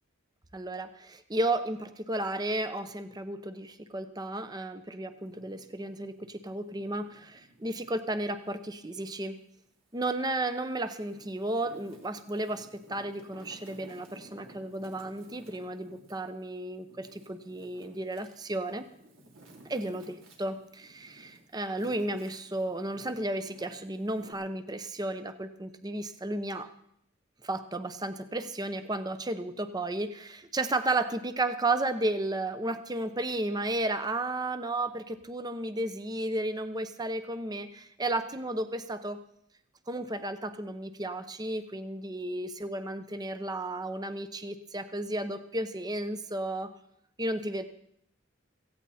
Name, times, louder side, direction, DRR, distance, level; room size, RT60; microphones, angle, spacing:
voice 1, 0.5-9.4 9.9-18.9 19.6-26.7 27.4-39.2 39.9-46.7 47.2-47.7, right 2 dB, 20° right, 10 dB, 0.8 m, -33 dB
Wind, 5.1-8.0 8.5-9.8 10.4-24.3, right 1 dB, 80° right, 3.3 m, -56 dB
17.0 x 15.5 x 4.2 m, 0.74 s
head